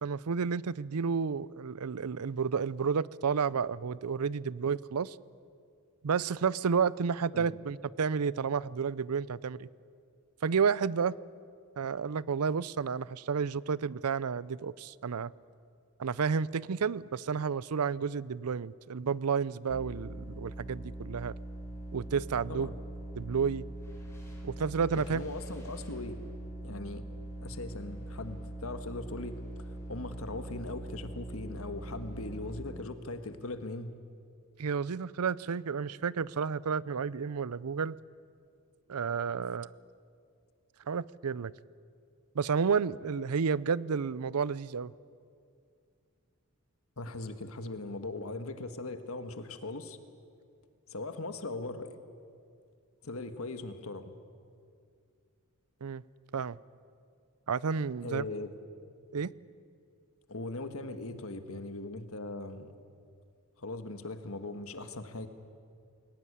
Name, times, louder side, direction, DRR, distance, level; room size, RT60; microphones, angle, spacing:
voice 1, 0.0-5.2 6.0-9.7 10.4-11.2 11.8-15.3 16.0-21.3 21.9-22.7 23.2-23.6 24.4-25.2 34.6-38.0 38.9-39.7 40.9-41.5 42.3-44.9 55.8-56.0 56.3-56.6 57.5-58.2 59.1-59.3, right 6 dB, 90° right, 21 dB, 0.5 m, -31 dB
sound 1, 19.7-32.6, right 1 dB, 10° left, 6.7 m, -42 dB
voice 2, 24.9-26.2 26.6-27.0 27.4-33.9 47.0-50.0 50.9-52.0 53.0-54.1 58.0-58.5 60.3-62.7 63.6-65.3, left 2 dB, 65° left, 9 dB, 1.6 m, -40 dB
22.0 x 18.5 x 9.9 m, 2.3 s
head